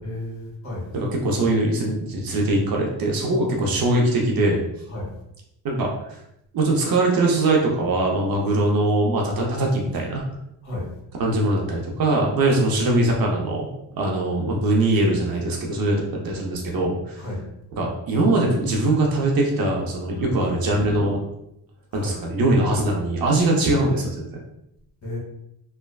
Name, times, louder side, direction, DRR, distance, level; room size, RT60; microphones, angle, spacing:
voice 1, 0.0-0.9 3.6-3.7 4.9-5.1 10.6-10.9 17.2-17.4 20.2-20.3 21.9-22.1 25.0-25.2, left 1 dB, 40° left, -3 dB, 1.3 m, -32 dB
voice 2, 0.9-4.6 5.6-6.2 6.5-10.2 11.2-13.7 14.0-16.0 16.2-17.2 17.8-21.2 21.9-24.4, right 2 dB, 50° right, -1 dB, 0.8 m, -22 dB
3.3 x 2.1 x 2.3 m, 0.81 s
cardioid pair, 85°, 44 cm